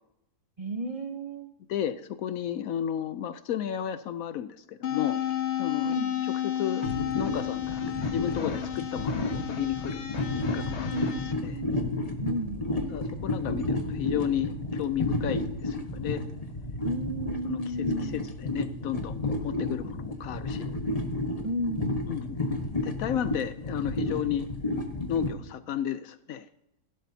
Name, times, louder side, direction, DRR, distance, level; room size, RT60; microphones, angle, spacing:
voice 1, 0.6-1.5 5.8-6.1 10.9-11.8 12.2-12.7 16.8-18.2 21.4-22.1, right 1 dB, 40° right, 4 dB, 0.5 m, -33 dB
voice 2, 1.7-5.2 5.6-6.9 7.1-10.1 10.3-10.9 11.3-11.6 12.6-16.3 17.4-20.8 22.1-22.4 22.8-24.5 25.1-26.5, left 10 dB, 70° left, 13 dB, 0.9 m, -33 dB
sound 1, 4.8-11.3, left 10 dB, 50° left, 1.2 m, -32 dB
sound 2, 6.8-25.3, left 2 dB, 25° left, 1.2 m, -32 dB
16.5 x 11.0 x 2.8 m, 0.84 s
omnidirectional pair, 1.7 m